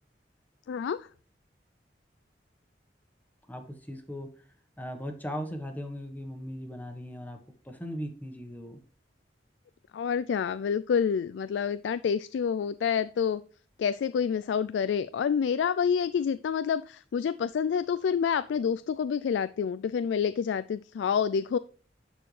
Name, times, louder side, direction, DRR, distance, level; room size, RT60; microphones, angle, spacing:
voice 1, 0.7-1.1 9.9-13.4 13.8-21.6, left 7 dB, 85° left, 15 dB, 0.3 m, -28 dB
voice 2, 3.5-4.3 4.8-7.4 7.6-8.8, equal, 10° left, 5 dB, 1.3 m, -38 dB
10.5 x 4.4 x 3.2 m, 0.42 s
head